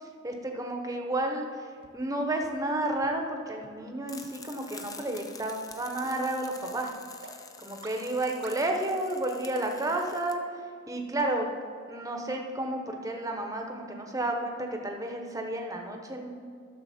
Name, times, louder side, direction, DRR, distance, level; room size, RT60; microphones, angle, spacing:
voice 1, 0.0-1.7 1.9-6.9 7.6-10.4 10.9-11.5 11.9-16.3, right 1 dB, 15° right, 3 dB, 0.8 m, -31 dB
sound 1, 1.8-1.9 2.4-2.5 3.0-3.1 3.6-3.7 4.2-4.3 4.8-4.9 5.4-5.5 6.0-6.1 6.6-6.7 7.2-7.3 7.8-7.9 8.4-8.5, right 3 dB, 65° right, 1.0 m, -48 dB
sound 2, 4.1-10.3, left 5 dB, 20° left, 0.5 m, -48 dB
13.0 x 6.6 x 4.2 m, 2.2 s
head